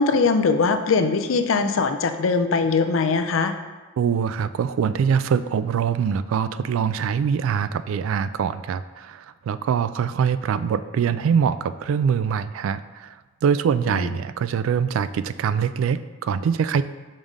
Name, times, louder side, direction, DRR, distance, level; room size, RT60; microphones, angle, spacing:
voice 1, 0.0-3.5 13.9-14.1, left 4 dB, 85° left, 7 dB, 0.5 m, -21 dB
voice 2, 4.0-13.1 13.4-16.8, right 7 dB, 85° right, 13 dB, 0.3 m, -23 dB
5.4 x 5.3 x 3.6 m, 1.3 s
head